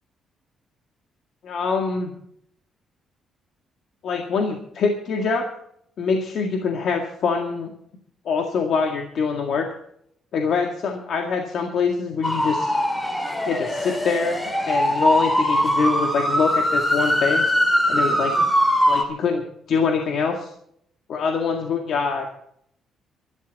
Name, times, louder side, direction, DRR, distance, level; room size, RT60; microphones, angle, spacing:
voice 1, 1.4-2.1 4.0-5.4 6.0-7.7 8.3-9.7 10.3-12.7 13.5-14.4 14.7-17.5 17.9-18.5 18.9-20.5 21.1-22.3, left 5 dB, 55° left, 3 dB, 1.9 m, -24 dB
sound 1, 12.2-19.0, equal, 10° left, 2.0 m, -21 dB
24.0 x 12.0 x 4.1 m, 0.71 s
cardioid pair, 160°, 0 cm